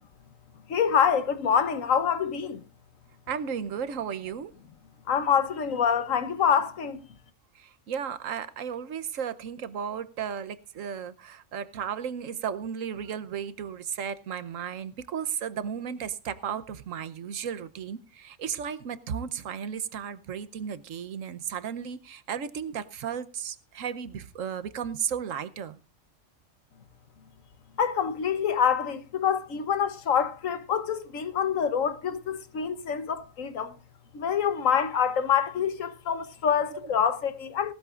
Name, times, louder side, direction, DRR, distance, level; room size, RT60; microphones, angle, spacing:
voice 1, 0.7-2.6 5.1-7.0 27.8-33.7 34.1-37.7, left 7 dB, 80° left, 1.4 m, -26 dB
voice 2, 3.3-4.5 7.5-25.8 36.7-36.9, right 8 dB, 80° right, 1.2 m, -34 dB
18.5 x 13.5 x 2.5 m
omnidirectional pair, 1.3 m